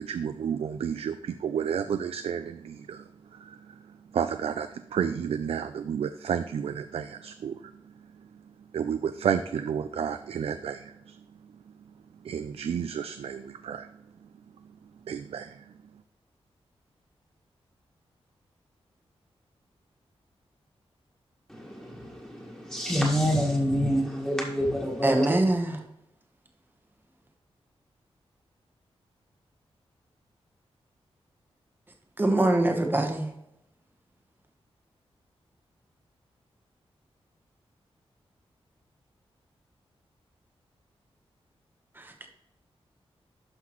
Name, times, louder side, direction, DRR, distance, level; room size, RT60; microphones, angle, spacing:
voice 1, 0.0-7.7 8.7-11.2 12.2-13.9 15.1-15.7, right 8 dB, 70° right, 0.4 m, -31 dB
voice 2, 21.5-25.3, equal, 5° left, 1.7 m, -27 dB
voice 3, 25.0-25.8 32.2-33.3 42.0-42.3, right 1 dB, 20° right, 1.1 m, -24 dB
11.5 x 5.8 x 3.1 m
wide cardioid pair, 155°, 10 cm